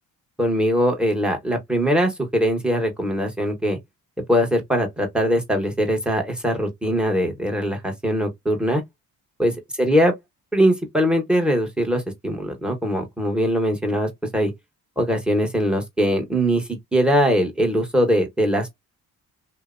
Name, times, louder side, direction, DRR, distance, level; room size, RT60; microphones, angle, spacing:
voice 1, 0.4-3.8 4.3-8.8 9.4-9.5 9.8-10.1 10.5-14.5 15.0-18.8, equal, ahead, 1.0 m, -21 dB
2.7 x 2.0 x 2.5 m
supercardioid pair, 60°, 40 cm